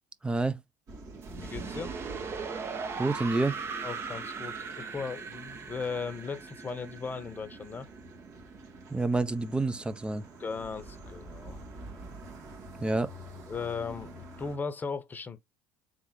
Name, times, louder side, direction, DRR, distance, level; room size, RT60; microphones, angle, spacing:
voice 1, 0.2-0.6 3.0-3.6 8.9-10.2 12.8-13.1, right 2 dB, 15° right, 0.6 m, -28 dB
sound 1, 0.9-14.6, right 2 dB, 60° right, 1.7 m, -47 dB
sound 2, 1.2-8.1, right 5 dB, 35° right, 0.9 m, -39 dB
voice 2, 1.4-1.9 3.8-7.9 10.4-11.6 13.5-15.4, left 5 dB, 25° left, 0.9 m, -37 dB
3.9 x 3.5 x 3.1 m
hypercardioid pair, 80°, 7 cm